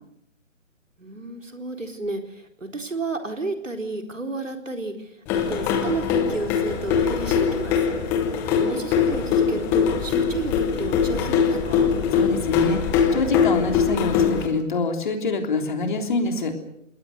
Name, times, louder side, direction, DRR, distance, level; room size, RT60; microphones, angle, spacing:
voice 1, 1.0-7.9 8.6-11.9, right 2 dB, 75° right, 5 dB, 4.2 m, -32 dB
sound 1, 5.3-14.5, left 6 dB, 5° left, 0.9 m, -22 dB
voice 2, 12.1-16.5, left 3 dB, 40° left, 5 dB, 3.5 m, -25 dB
28.0 x 20.5 x 6.6 m, 0.77 s
figure-of-eight pair, 140°, 39 cm